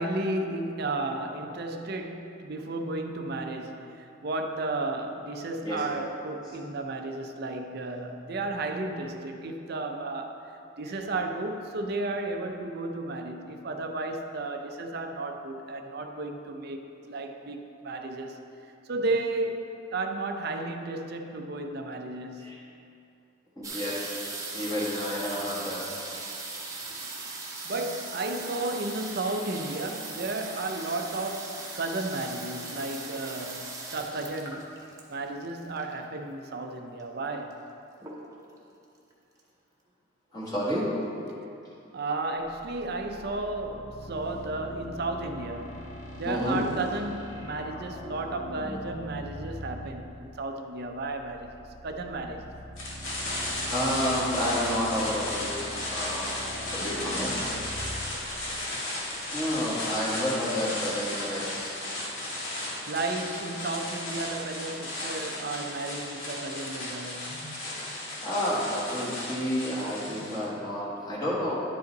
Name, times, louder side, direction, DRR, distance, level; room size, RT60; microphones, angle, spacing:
voice 1, 0.0-10.5 10.8-18.4 18.8-22.5 27.6-34.6 35.1-37.6 41.9-45.8 46.2-52.5 62.9-67.5, right 2 dB, 50° right, 5 dB, 0.6 m, -33 dB
voice 2, 23.6-24.2 24.5-25.8 40.3-40.9 46.2-46.6 53.7-55.5 55.8-56.3 56.7-57.4 59.3-61.8 67.3-67.4 68.2-71.5, equal, 20° left, -8 dB, 1.3 m, -30 dB
sound 1, 23.6-36.2 37.0-37.1 37.3-37.7 38.0-38.6 39.1-39.2 39.4-39.5, right 3 dB, 15° right, 0.8 m, -39 dB
sound 2, 42.4-59.6, left 1 dB, 45° left, 1.8 m, -43 dB
sound 3, 52.8-70.4, left 1 dB, 75° left, 1.9 m, -34 dB
10.5 x 5.2 x 4.0 m, 2.7 s
head